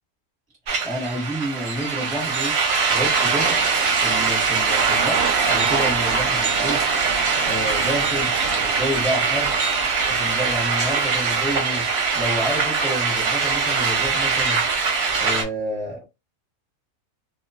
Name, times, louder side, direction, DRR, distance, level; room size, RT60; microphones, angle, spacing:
sound 1, 0.7-15.4, right 5 dB, 60° right, 0.8 m, -22 dB
voice 1, 0.8-2.6 2.9-3.6 4.0-6.8 7.5-8.3 8.6-9.5 10.1-11.9 12.1-14.6 15.2-16.0, equal, 5° left, 0.7 m, -29 dB
2.3 x 2.3 x 2.4 m
omnidirectional pair, 1.5 m